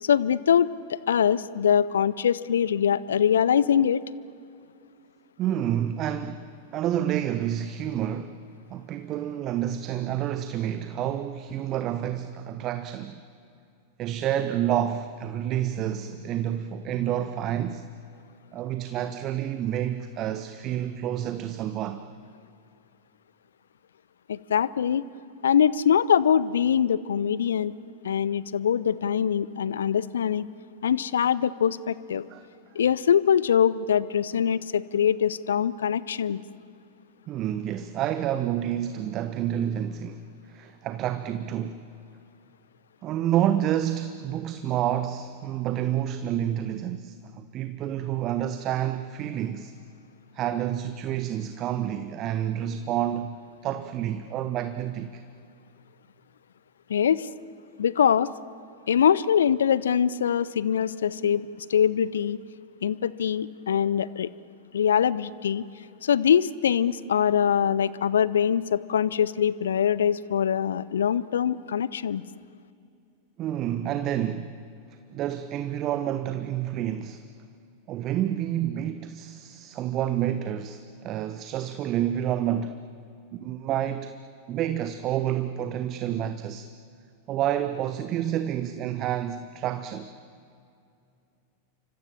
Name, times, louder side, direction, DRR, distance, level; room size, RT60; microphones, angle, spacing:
voice 1, 0.0-4.0 24.3-25.0 25.4-27.7 28.0-30.5 30.8-32.2 32.7-36.4 56.9-57.3 57.8-58.3 58.9-62.4 62.8-64.3 64.7-65.6 66.0-72.2, left 8 dB, 65° left, 0.7 m, -23 dB
voice 2, 5.4-13.2 14.0-17.9 18.5-22.0 32.3-32.4 37.3-41.9 43.0-49.7 50.3-55.2 73.4-74.6 74.9-77.2 77.9-82.8 83.3-84.2 84.5-86.7 87.3-90.1, right 11 dB, 35° right, 0.9 m, -29 dB
29.5 x 25.0 x 7.2 m
figure-of-eight pair, 90°, 0 cm